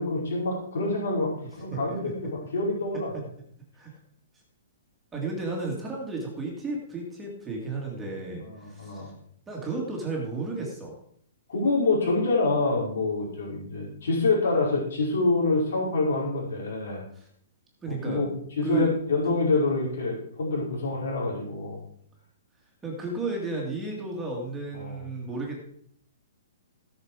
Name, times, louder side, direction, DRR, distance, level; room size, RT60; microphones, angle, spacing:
voice 1, 0.0-3.1 8.4-9.1 11.5-17.0 17.9-21.8 24.7-25.0, left 3 dB, 75° left, -4 dB, 5.2 m, -26 dB
voice 2, 1.7-2.1 3.7-3.9 5.1-9.1 9.5-11.0 17.1-17.3 17.8-18.3 18.6-19.0 19.2-19.3 22.8-25.6, right 3 dB, 10° right, -2 dB, 2.2 m, -33 dB
17.5 x 6.6 x 4.8 m, 0.66 s
hypercardioid pair, 175°, 0 cm